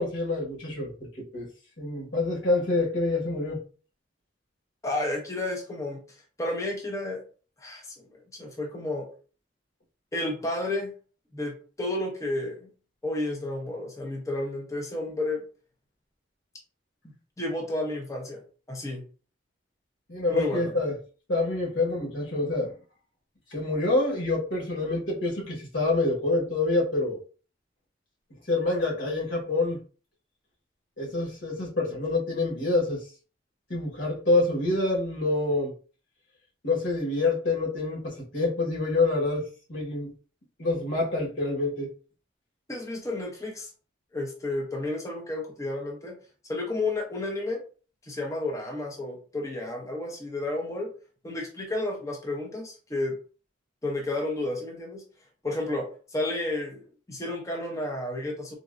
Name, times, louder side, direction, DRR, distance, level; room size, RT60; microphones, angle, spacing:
voice 1, 0.0-1.5 1.8-3.6 20.1-20.9 21.3-22.7 23.5-27.2 28.5-29.8 31.0-33.0 33.7-35.7 36.6-40.1 40.6-41.9, left 2 dB, 85° left, -3 dB, 1.3 m, -27 dB
voice 2, 4.8-6.0 6.4-7.2 7.6-9.1 10.1-10.9 11.3-12.7 13.0-15.4 17.4-18.4 18.7-19.0 20.3-20.7 42.7-43.7 44.1-46.1 46.5-47.6 48.0-50.9 51.2-53.2 53.8-55.0 55.4-58.6, left 2 dB, 20° left, 0 dB, 0.6 m, -31 dB
3.8 x 2.2 x 2.4 m, 0.38 s
head